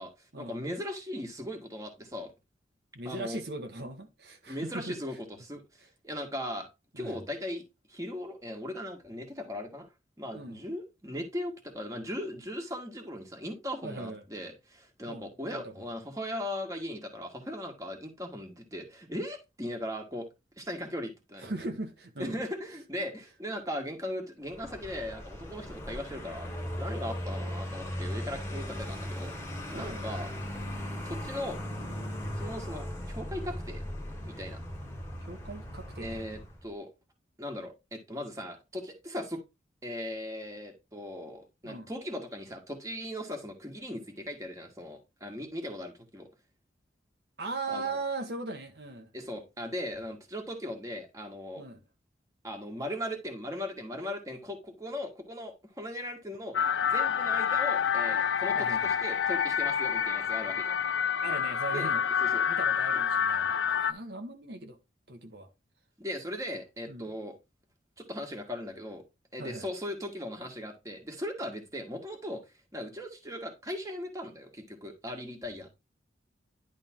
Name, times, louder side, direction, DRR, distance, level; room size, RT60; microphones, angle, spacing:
voice 1, 0.0-2.3 3.1-3.4 4.5-6.7 7.0-7.6 7.9-9.9 10.2-20.3 20.6-21.5 22.2-29.4 29.7-30.3 31.1-31.6 32.4-33.8 34.2-34.6 36.0-36.9 37.4-39.4 39.8-46.3 47.7-48.0 49.1-51.6 52.4-60.8 61.7-61.9 62.2-62.4 66.0-67.4 68.0-69.0 69.3-72.4 72.7-75.7, left 1 dB, 20° right, 1.8 m, -38 dB
voice 2, 2.9-5.0 6.9-7.2 10.3-10.6 13.8-14.2 15.1-15.9 21.4-22.4 29.7-30.1 35.2-36.3 41.6-41.9 47.4-49.1 51.6-51.8 58.5-58.9 61.2-62.0 62.5-64.8 65.1-65.5 66.9-67.1 69.4-69.6, right 2 dB, 65° right, 1.3 m, -39 dB
Vehicle, 24.4-36.7, equal, 15° left, 1.6 m, -38 dB
sound 1, 56.5-63.9, left 7 dB, 85° left, 0.6 m, -28 dB
11.0 x 3.8 x 3.7 m
head